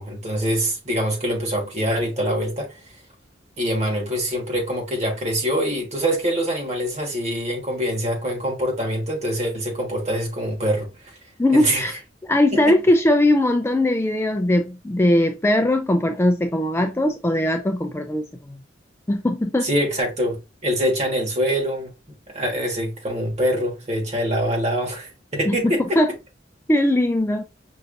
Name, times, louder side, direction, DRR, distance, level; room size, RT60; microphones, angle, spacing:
voice 1, 0.0-2.8 3.6-11.2 11.5-11.9 12.5-12.6 19.6-21.9 22.3-26.0, equal, 35° right, 1.6 m, -24 dB
voice 2, 11.4-12.0 12.3-18.6 19.1-19.7 25.5-26.1 26.7-27.4, left 1 dB, 15° left, 0.3 m, -20 dB
5.6 x 2.6 x 2.6 m
head